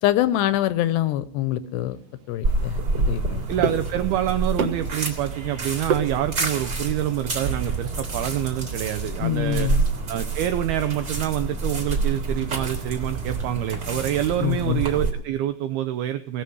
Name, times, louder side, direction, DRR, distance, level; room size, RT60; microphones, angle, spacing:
voice 1, 0.0-2.0 2.3-3.7 9.2-9.8 14.4-14.8, left 13 dB, 80° left, 14 dB, 2.7 m, -25 dB
sound 1, 1.6-6.7, right 5 dB, 65° right, 1.6 m, -32 dB
sound 2, 2.4-15.1, right 3 dB, 25° right, 3.1 m, -28 dB
voice 2, 3.5-9.7 10.1-16.4, right 12 dB, 85° right, 10 dB, 2.2 m, -26 dB
18.0 x 6.9 x 9.3 m, 0.67 s
omnidirectional pair, 5.3 m